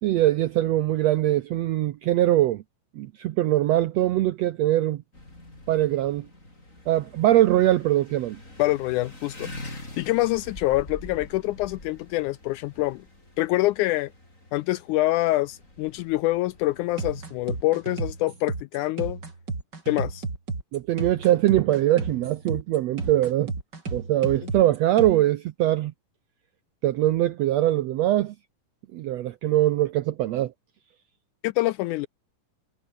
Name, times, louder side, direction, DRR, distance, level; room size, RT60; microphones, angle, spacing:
voice 1, 0.0-2.6 3.0-5.0 5.7-6.3 6.9-8.4 20.7-23.5 23.9-25.9 26.8-28.3 28.9-30.5, right 14 dB, 85° right, 1.5 m, -22 dB
sound 1, 5.1-18.2, left 1 dB, 20° left, 8.4 m, -45 dB
voice 2, 8.6-13.0 13.4-14.1 14.5-19.2 19.9-20.2 31.4-32.1, left 18 dB, 80° left, 1.8 m, -26 dB
sound 2, 17.0-25.2, right 3 dB, 30° right, 4.4 m, -33 dB
omnidirectional pair, 3.9 m